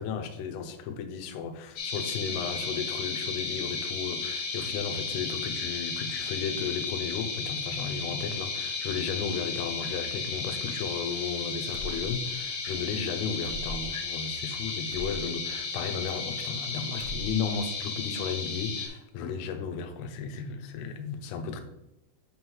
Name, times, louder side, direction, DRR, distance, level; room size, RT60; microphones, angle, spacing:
voice 1, 0.0-21.6, left 6 dB, 85° left, 6 dB, 3.4 m, -34 dB
sound 1, 1.8-18.9, left 4 dB, 65° left, 2.8 m, -34 dB
sound 2, 11.7-12.4 12.7-12.8 13.4-14.1 14.9-15.3 16.1-16.6 16.9-17.6, right 1 dB, 80° right, 3.5 m, -41 dB
9.0 x 5.4 x 3.1 m, 0.90 s
omnidirectional pair, 5.9 m